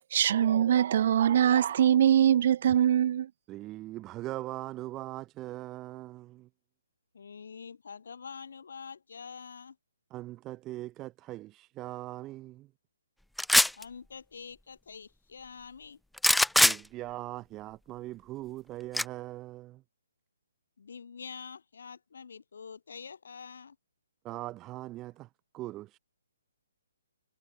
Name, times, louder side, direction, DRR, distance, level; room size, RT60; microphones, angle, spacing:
voice 1, 0.1-3.3, right 10 dB, 50° right, 1.1 m, -23 dB
voice 2, 3.5-6.5 10.1-12.7 16.6-19.8 24.2-25.3 25.5-26.0, right 16 dB, 20° right, 2.3 m, -40 dB
voice 3, 7.1-9.8 13.8-16.0 20.8-23.8, left 6 dB, 65° left, 6.9 m, -46 dB
sound 1, 13.4-13.8 16.2-16.8 18.9-19.0, left 1 dB, ahead, 0.4 m, -21 dB
figure-of-eight pair, 140°, 0 cm